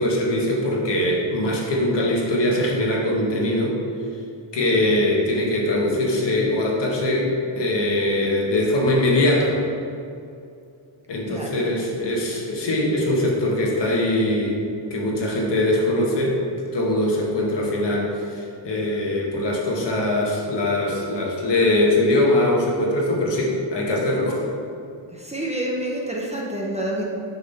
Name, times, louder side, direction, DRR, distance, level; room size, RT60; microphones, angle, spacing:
voice 1, 0.0-3.8 4.5-9.6 11.1-14.6 14.9-16.4 16.7-24.4, left 1 dB, 60° left, -2 dB, 1.6 m, -22 dB
voice 2, 11.3-11.6 25.1-27.0, right 1 dB, 15° right, -2 dB, 0.9 m, -28 dB
6.9 x 3.7 x 5.8 m, 2.5 s
cardioid pair, 95°, 48 cm